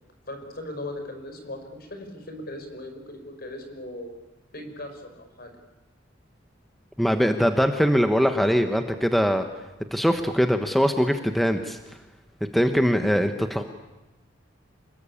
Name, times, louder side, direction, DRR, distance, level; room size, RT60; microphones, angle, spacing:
voice 1, 0.3-4.1 4.5-5.5, left 1 dB, 55° left, 6 dB, 5.3 m, -38 dB
voice 2, 7.0-9.4 9.9-11.8 12.5-13.6, equal, ahead, 6 dB, 1.1 m, -22 dB
27.0 x 21.5 x 8.5 m, 1.1 s
head